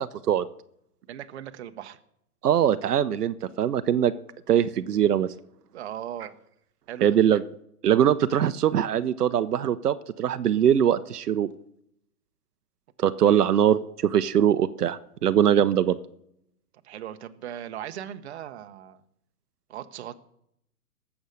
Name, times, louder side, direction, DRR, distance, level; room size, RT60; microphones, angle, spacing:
voice 1, 1.1-2.0 5.7-6.4 6.9-7.2 13.3-13.5 16.8-19.0 19.7-20.2, right 10 dB, 45° right, 9 dB, 0.9 m, -38 dB
voice 2, 2.4-4.1 4.5-5.3 7.0-7.4 7.8-11.5 13.0-16.0, right 10 dB, 80° right, 11 dB, 0.8 m, -22 dB
18.5 x 7.2 x 6.5 m, 0.77 s
hypercardioid pair, 150°, 46 cm